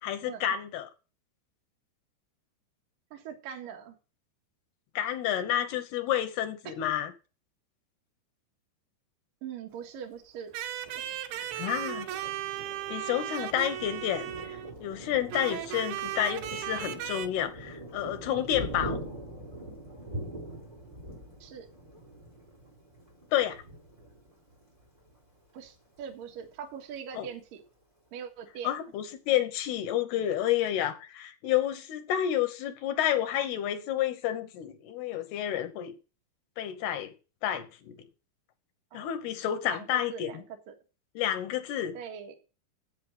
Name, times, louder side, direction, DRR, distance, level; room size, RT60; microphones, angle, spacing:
voice 1, 0.0-0.9 5.0-7.1 11.3-12.1 12.9-19.0 23.3-23.6 27.2-27.3 28.6-35.9 36.6-37.1 37.4-38.0 38.9-40.4 41.2-41.9, left 11 dB, 70° left, 2.8 m, -30 dB
voice 2, 3.1-4.0 6.6-6.7 9.4-10.5 21.4-21.7 25.5-27.6 28.1-28.8 38.9-39.1 39.6-40.7 41.9-42.3, right 8 dB, 60° right, 3.0 m, -42 dB
sound 1, 10.5-14.8 15.3-17.3, right 12 dB, 80° right, 3.1 m, -36 dB
Thunder, 10.8-25.1 25.6-25.8 26.1-26.7, right 1 dB, 10° right, 3.8 m, -43 dB
8.2 x 7.5 x 7.8 m
omnidirectional pair, 5.2 m